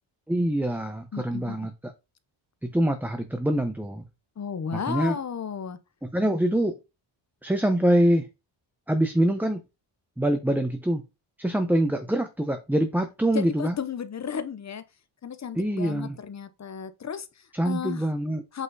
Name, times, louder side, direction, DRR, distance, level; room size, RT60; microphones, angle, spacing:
voice 1, 0.3-1.7 2.6-4.0 4.9-5.2 6.0-6.7 7.4-8.3 8.9-9.6 10.2-11.0 11.4-13.7 15.6-16.1 17.6-18.4, right 1 dB, 5° right, 0.9 m, -24 dB
voice 2, 1.1-1.6 4.4-5.8 13.3-14.8 15.2-18.1 18.5-18.6, left 7 dB, 35° left, 0.9 m, -34 dB
8.3 x 3.8 x 4.1 m
wide cardioid pair, 135°, 46 cm